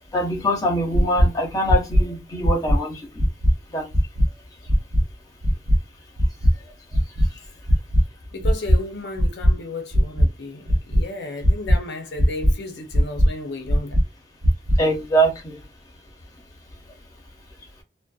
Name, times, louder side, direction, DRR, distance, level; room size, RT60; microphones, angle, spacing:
voice 1, 0.1-3.2 3.7-3.9 14.8-15.6, right 1 dB, 20° left, 0.8 m, -23 dB
sound 1, 0.9-1.2 1.7-2.0 2.4-2.8 3.2-3.5 3.9-4.3 4.7-5.0 5.4-5.8 6.2-6.5 6.9-7.3 7.7-8.0 8.4-8.8 9.2-9.5 9.9-10.2 10.7-11.0 11.4-11.8 12.2-12.5 12.9-13.3 13.7-14.0 14.4-14.8, equal, 45° right, 0.6 m, -17 dB
voice 2, 8.3-14.0, left 2 dB, 75° left, 0.6 m, -33 dB
2.5 x 2.1 x 2.3 m
head